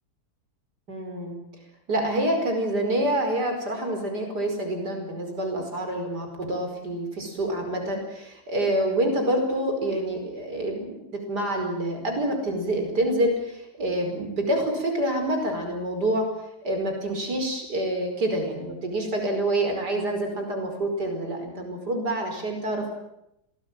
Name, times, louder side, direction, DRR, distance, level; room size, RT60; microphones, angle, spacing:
voice 1, 0.9-1.4 1.9-16.3 16.6-23.0, right 1 dB, 75° right, 4 dB, 5.7 m, -27 dB
26.5 x 19.5 x 9.1 m, 0.82 s
omnidirectional pair, 1.8 m